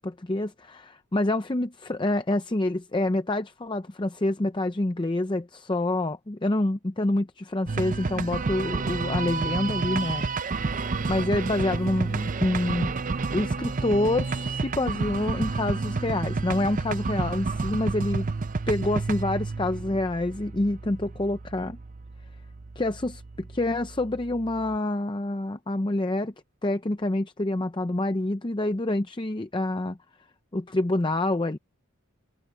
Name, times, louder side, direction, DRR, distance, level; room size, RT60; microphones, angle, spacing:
voice 1, 0.0-10.2 11.1-12.9 13.3-18.3 18.7-21.8 22.8-26.3 26.6-30.0 30.5-31.6, left 1 dB, 20° left, 0.6 m, -27 dB
sound 1, 7.7-24.8, right 4 dB, 35° right, 0.5 m, -30 dB
head